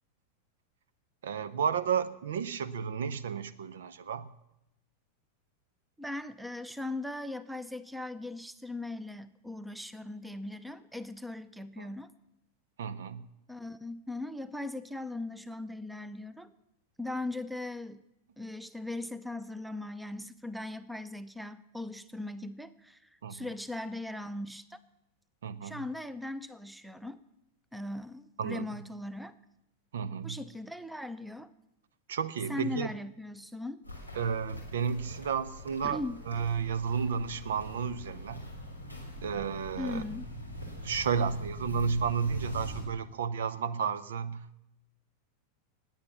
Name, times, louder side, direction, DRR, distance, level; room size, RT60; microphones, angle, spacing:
voice 1, 1.2-4.3 11.8-11.9 12.8-13.2 23.2-23.5 25.4-25.8 28.4-28.6 29.9-30.4 32.1-32.9 34.1-38.5 39.2-40.0 40.8-44.5, right 6 dB, 60° right, 16 dB, 0.8 m, -32 dB
voice 2, 6.0-12.1 13.5-16.5 17.0-18.0 18.4-24.8 25.6-27.2 27.7-29.4 30.2-31.5 32.5-33.8 35.8-36.2 39.8-40.2, left 2 dB, 5° right, 16 dB, 0.7 m, -39 dB
Walk footsteps, 33.8-42.8, left 1 dB, 85° right, 4.0 m, -43 dB
19.5 x 8.9 x 7.1 m, 0.88 s
figure-of-eight pair, 90°, 0 cm